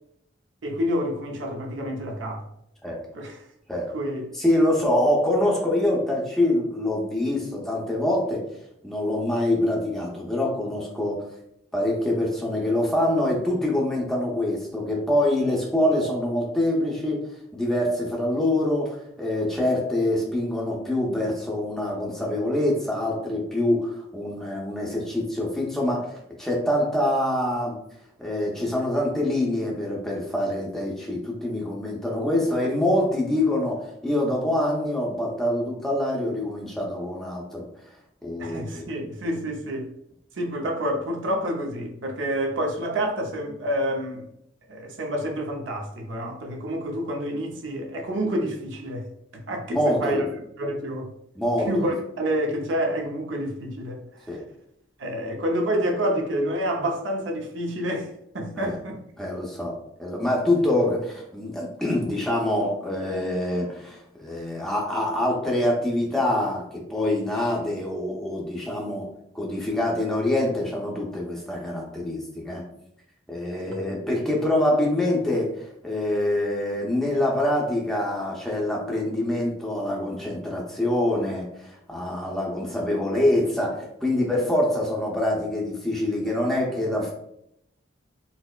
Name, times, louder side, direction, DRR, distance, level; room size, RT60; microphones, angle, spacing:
voice 1, 0.6-2.5 3.1-3.4 3.9-4.3 38.4-39.9 40.4-44.3 44.7-49.1 49.5-50.2 50.6-51.1 51.7-54.0 55.0-59.0 73.7-73.8, equal, 85° right, 0.6 m, -28 dB
voice 2, 4.3-8.4 8.8-11.2 11.7-27.8 28.2-37.6 38.2-38.8 49.7-50.2 51.4-51.9 54.3-54.4 58.5-58.8 59.2-69.1 69.3-72.6 73.3-87.1, left 1 dB, ahead, 0.6 m, -25 dB
4.1 x 2.0 x 2.3 m
head